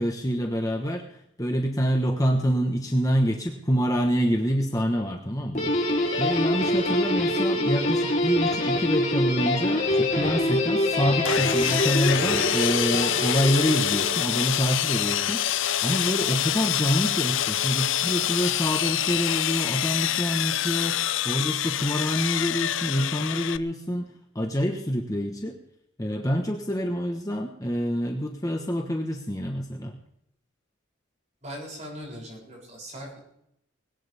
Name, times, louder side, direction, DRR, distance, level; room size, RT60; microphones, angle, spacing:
voice 1, 0.0-5.9 6.2-25.6 26.0-30.0, equal, 15° left, 2 dB, 1.2 m, -26 dB
Guitar, 5.5-14.9, left 1 dB, 35° left, 3.7 m, -25 dB
Sawing, 11.2-23.6, left 11 dB, 70° left, 0.6 m, -26 dB
voice 2, 31.4-33.2, equal, 35° right, -2 dB, 7.0 m, -40 dB
20.5 x 18.0 x 3.5 m, 0.75 s
head